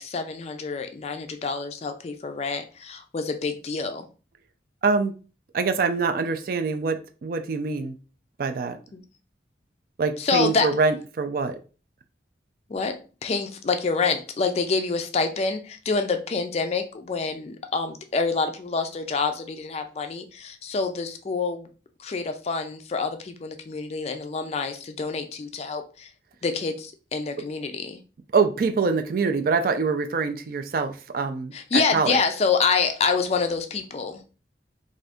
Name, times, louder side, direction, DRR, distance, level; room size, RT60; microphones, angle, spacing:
voice 1, 0.0-4.1 8.9-9.0 10.2-10.7 12.7-21.7 22.0-26.1 26.4-28.0 31.5-34.2, left 4 dB, 35° left, 7 dB, 0.3 m, -27 dB
voice 2, 5.5-8.0 8.4-8.8 10.0-11.6 28.3-32.2, right 4 dB, 50° right, 8 dB, 0.3 m, -24 dB
2.7 x 2.5 x 3.4 m, 0.35 s
head